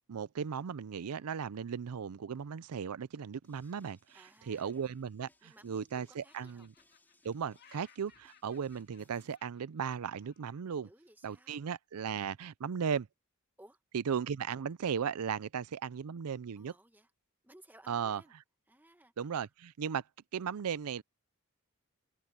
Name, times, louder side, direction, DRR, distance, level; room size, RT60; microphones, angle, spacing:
voice 1, 0.1-6.7 7.2-10.9 11.2-13.1 13.9-16.7 17.9-18.2 19.2-20.0 20.3-21.0, right 7 dB, 90° right, 0.5 m, -36 dB
sound 1, 3.4-9.4, left 1 dB, 10° left, 3.6 m, -70 dB
voice 2, 4.1-4.7 5.4-6.7 10.8-11.6 13.6-13.8 16.5-17.1 17.4-18.3 18.7-19.1, right 1 dB, 10° right, 1.4 m, -60 dB
Laughter, 5.0-5.9 6.2-10.6, left 7 dB, 45° left, 2.1 m, -65 dB
open air
head